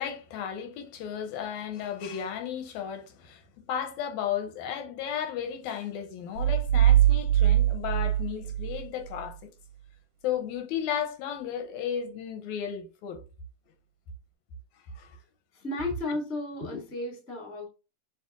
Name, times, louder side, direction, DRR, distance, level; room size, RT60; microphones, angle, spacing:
voice 1, 0.0-3.4 3.7-9.5 10.2-13.2 15.0-15.1, left 9 dB, 85° left, 1.9 m, -34 dB
sound 1, 6.4-9.3, right 12 dB, 80° right, 1.9 m, -22 dB
voice 2, 15.5-17.7, left 2 dB, 10° left, 0.8 m, -33 dB
6.4 x 2.7 x 2.4 m
omnidirectional pair, 3.3 m